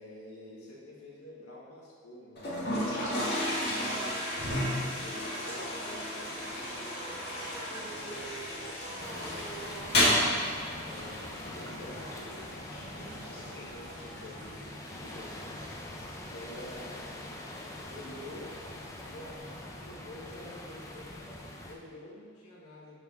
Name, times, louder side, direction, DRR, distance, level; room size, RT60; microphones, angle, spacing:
voice 1, 0.0-4.4 4.9-10.1 10.8-15.6 16.2-17.1 17.9-18.5 19.0-22.9, left 1 dB, 80° left, -5 dB, 1.7 m, -49 dB
Toilet flush, 2.4-19.4, left 1 dB, 45° left, 1.8 m, -34 dB
sound 1, 4.7-10.4, right 2 dB, 35° right, 0.9 m, -45 dB
sound 2, 9.0-21.8, left 1 dB, 15° left, 0.5 m, -44 dB
7.6 x 4.9 x 3.9 m, 2.2 s
head